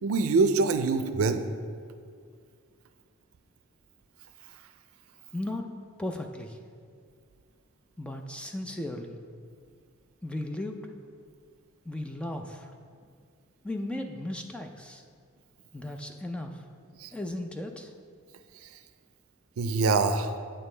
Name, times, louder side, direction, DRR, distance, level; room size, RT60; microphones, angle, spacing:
voice 1, 0.0-1.4 17.0-17.1 19.6-20.4, right 4 dB, 70° right, 9 dB, 0.5 m, -24 dB
voice 2, 5.3-5.7 6.0-6.6 8.0-9.2 10.2-10.8 11.9-12.7 13.6-15.0 15.7-16.6 17.1-17.9, left 1 dB, 5° left, 4 dB, 0.4 m, -36 dB
8.8 x 7.1 x 3.3 m, 2.1 s
head